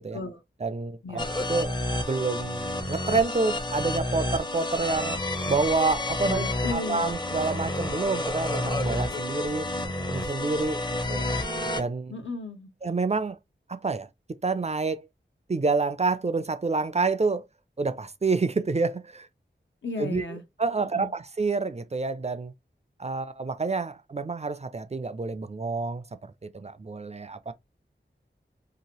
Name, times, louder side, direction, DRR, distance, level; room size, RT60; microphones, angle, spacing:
voice 1, 0.6-1.8 2.1-5.2 5.5-6.5 6.7-9.7 10.1-10.8 11.1-11.3 11.8-12.1 12.8-13.4 13.7-14.1 14.4-15.1 15.5-17.4 17.8-19.3 20.0-22.5 23.0-27.5, right 4 dB, 35° right, 0.4 m, -28 dB
sound 1, 1.2-11.8, left 1 dB, 25° left, 0.6 m, -30 dB
voice 2, 6.2-7.1 12.1-12.7 19.8-20.4 20.8-21.1, left 3 dB, 75° left, 0.9 m, -35 dB
2.9 x 2.5 x 2.9 m
wide cardioid pair, 45°, 20 cm